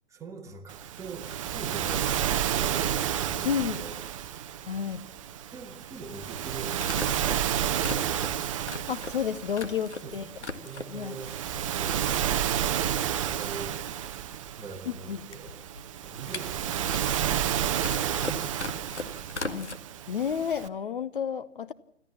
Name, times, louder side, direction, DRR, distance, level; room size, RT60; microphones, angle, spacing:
voice 1, 0.1-4.9 5.5-7.0 10.0-14.1 14.6-15.6 16.0-20.0, right 4 dB, 10° right, 3 dB, 1.6 m, -44 dB
Waves surf, 0.7-20.7, right 10 dB, 30° right, 0.7 m, -31 dB
voice 2, 3.4-3.8 4.6-5.1 8.9-10.3 10.9-11.2 14.9-15.2 19.5-19.8 20.1-21.7, left 8 dB, 50° left, 13 dB, 0.8 m, -31 dB
sound 1, 3.9-4.0 5.8-5.9 6.8-10.1 10.3-11.1 11.5-12.2 12.4-12.5 12.7-19.8, left 3 dB, 75° left, 1.8 m, -40 dB
26.0 x 14.0 x 7.2 m, 0.71 s
figure-of-eight pair, 125°, 35 cm